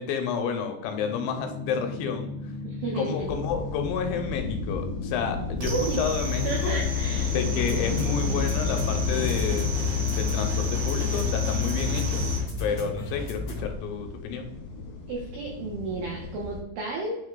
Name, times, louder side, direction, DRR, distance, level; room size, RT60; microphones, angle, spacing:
voice 1, 0.0-2.3 3.0-6.8 7.3-9.8 10.1-12.2 12.6-14.5, left 6 dB, 90° left, 5 dB, 3.0 m, -30 dB
sound 1, 0.8-13.9, left 2 dB, 30° left, 1.4 m, -37 dB
voice 2, 2.6-3.3 5.7-6.0 6.4-7.3 15.1-17.2, right 3 dB, 85° right, -1 dB, 1.9 m, -32 dB
sound 2, 3.2-16.6, left 3 dB, 65° left, 3.2 m, -35 dB
sound 3, 5.6-12.4, left 5 dB, 60° right, 2.9 m, -28 dB
8.9 x 3.2 x 3.7 m, 0.92 s
omnidirectional pair, 5.2 m